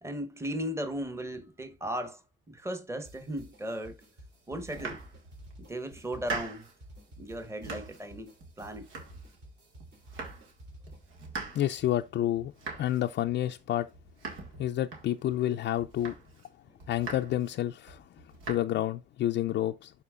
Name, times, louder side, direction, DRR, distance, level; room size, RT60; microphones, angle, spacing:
voice 1, 0.0-2.2 2.5-4.0 4.5-5.0 5.6-6.7 7.2-8.3 8.6-8.9, equal, 15° right, 1.1 m, -36 dB
sound 1, 3.0-11.2, equal, 60° right, 3.1 m, -53 dB
Domestic sounds home sounds, 4.6-5.5 5.9-6.8 7.2-8.1 8.4-9.5 9.8-10.6 10.8-15.4 15.8-16.5 16.8-17.5 17.9-18.5, right 4 dB, 90° right, 1.8 m, -43 dB
voice 2, 11.5-12.5 12.8-13.9 14.6-16.1 16.9-18.0 18.5-19.9, left 12 dB, 65° left, 0.4 m, -29 dB
12.0 x 4.3 x 2.4 m
cardioid pair, 90°, 20 cm